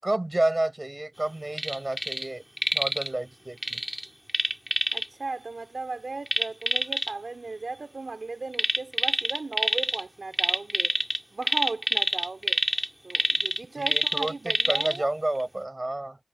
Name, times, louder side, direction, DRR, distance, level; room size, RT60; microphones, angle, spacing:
voice 1, 0.0-2.4 2.7-3.8 13.7-16.2, right 1 dB, 25° right, 7.6 m, -30 dB
sound 1, 1.5-2.3 2.6-3.1 3.6-5.1 6.3-7.1 8.5-10.0 10.3-15.0 15.4-15.5, equal, ahead, 3.3 m, -26 dB
voice 2, 4.9-11.0 11.3-12.6 13.0-15.1, right 3 dB, 55° right, 3.2 m, -36 dB
cardioid pair, 45°, 0 cm